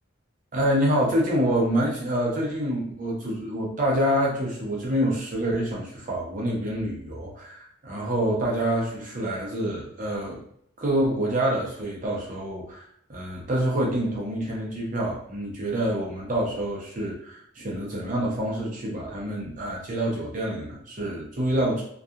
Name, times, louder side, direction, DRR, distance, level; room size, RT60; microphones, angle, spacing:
voice 1, 0.5-10.4 10.8-12.8 13.1-21.8, right 1 dB, 40° right, -3 dB, 0.6 m, -27 dB
2.7 x 2.3 x 2.3 m, 0.69 s
head